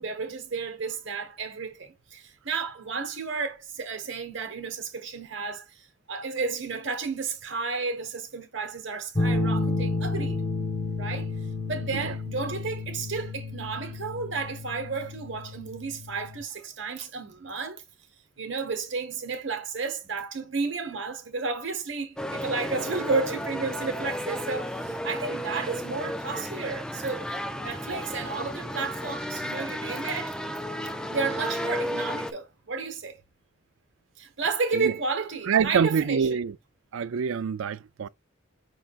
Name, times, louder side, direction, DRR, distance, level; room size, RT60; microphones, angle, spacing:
voice 1, 0.0-10.4 11.0-11.3 11.6-17.8 18.4-27.2 27.6-30.3 31.1-33.2 34.2-36.4, right 4 dB, 60° right, 1.4 m, -32 dB
sound 1, 9.2-16.4, left 2 dB, 30° left, 0.9 m, -31 dB
sound 2, 22.2-32.3, equal, 5° left, 0.4 m, -33 dB
voice 2, 35.5-36.6 36.9-38.1, right 6 dB, 80° right, 0.4 m, -25 dB
5.6 x 3.7 x 2.4 m
head